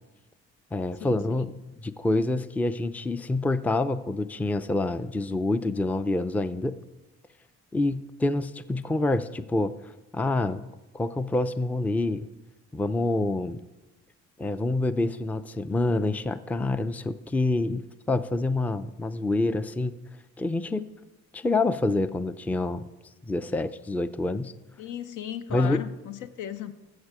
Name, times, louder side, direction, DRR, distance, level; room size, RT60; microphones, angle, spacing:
voice 1, 0.7-6.8 7.7-9.7 10.1-10.6 10.9-12.3 12.7-13.6 14.4-20.0 20.4-20.9 21.3-22.8 23.3-24.5 25.5-25.9, left 2 dB, 5° left, 14 dB, 0.4 m, -27 dB
voice 2, 24.8-26.7, left 10 dB, 80° left, 11 dB, 0.8 m, -36 dB
14.0 x 7.3 x 4.8 m, 1.1 s
cardioid pair, 90°, 30 cm